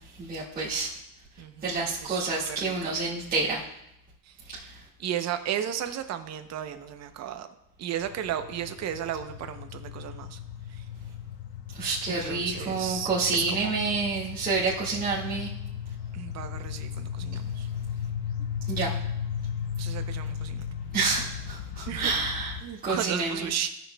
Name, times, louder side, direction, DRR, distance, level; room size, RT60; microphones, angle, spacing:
voice 1, 0.2-0.9 1.6-3.6 4.5-4.6 11.8-15.5 18.7-18.9 20.9-22.5 22.8-23.5, right 4 dB, 20° right, -9 dB, 1.8 m, -28 dB
voice 2, 1.4-3.0 4.3-4.4 5.0-7.5 7.8-10.4 12.1-13.8 16.1-17.7 19.8-20.6 21.9-22.1 22.6-23.7, right 10 dB, 40° right, 8 dB, 0.7 m, -34 dB
sound 1, 8.0-22.6, left 8 dB, 75° left, 0.9 m, -36 dB
16.5 x 6.2 x 2.2 m, 0.83 s
cardioid pair, 155°, 41 cm